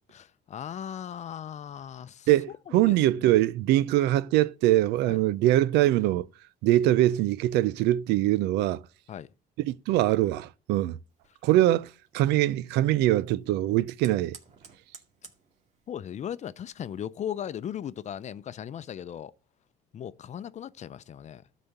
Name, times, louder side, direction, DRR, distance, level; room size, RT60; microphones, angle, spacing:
voice 1, 0.1-2.3 2.7-3.0 3.2-3.3 5.1-5.2 9.1-9.3 15.9-19.3 19.9-21.4, left 9 dB, 45° left, 0.6 m, -37 dB
voice 2, 2.3-6.2 6.6-8.8 9.6-11.0 11.4-14.4, right 14 dB, 90° right, 0.5 m, -23 dB
Fire, 11.1-18.3, right 5 dB, 40° right, 2.2 m, -57 dB
12.5 x 4.2 x 8.0 m
cardioid pair, 110°, 17 cm